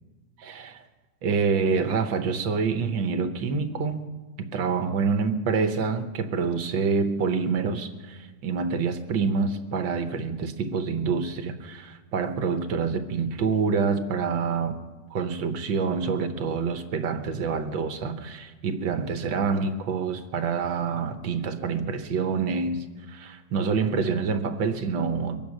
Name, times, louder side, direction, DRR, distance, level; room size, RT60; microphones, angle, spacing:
voice 1, 0.4-0.8 1.2-4.0 4.4-14.8 15.1-25.4, right 5 dB, 75° right, 8 dB, 1.8 m, -27 dB
23.5 x 9.1 x 6.4 m, 1.3 s
omnidirectional pair, 2.1 m